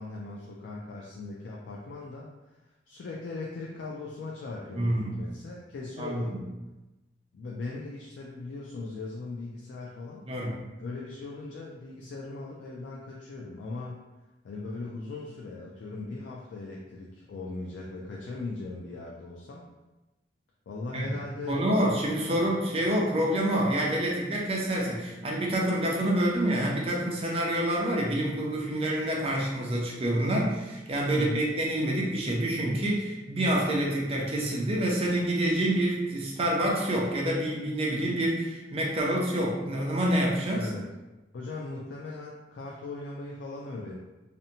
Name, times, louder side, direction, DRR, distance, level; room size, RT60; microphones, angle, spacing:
voice 1, 0.0-2.3 2.9-6.4 7.3-10.3 10.8-14.1 14.4-19.7 20.7-21.6 22.3-22.4 31.1-31.5 40.5-40.8 41.3-44.0, left 3 dB, 70° left, -3 dB, 0.3 m, -39 dB
voice 2, 4.7-5.2 6.0-6.4 10.3-10.6 20.9-21.1 21.5-40.7, right 1 dB, 30° right, -2 dB, 0.5 m, -27 dB
2.7 x 2.1 x 2.7 m, 1.1 s
head